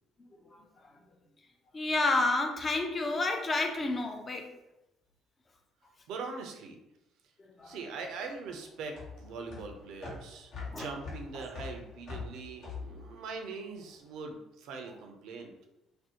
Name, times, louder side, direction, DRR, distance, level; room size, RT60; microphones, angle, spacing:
voice 1, 1.7-4.5 7.6-7.8 10.7-10.9, left 2 dB, 35° left, 4 dB, 0.5 m, -29 dB
voice 2, 6.1-6.8 7.6-15.5, right 4 dB, 70° right, 4 dB, 0.4 m, -42 dB
sound 1, 7.6-14.1, left 4 dB, 65° left, 0.9 m, -44 dB
2.5 x 2.0 x 2.7 m, 0.89 s
hypercardioid pair, 55°, 0 cm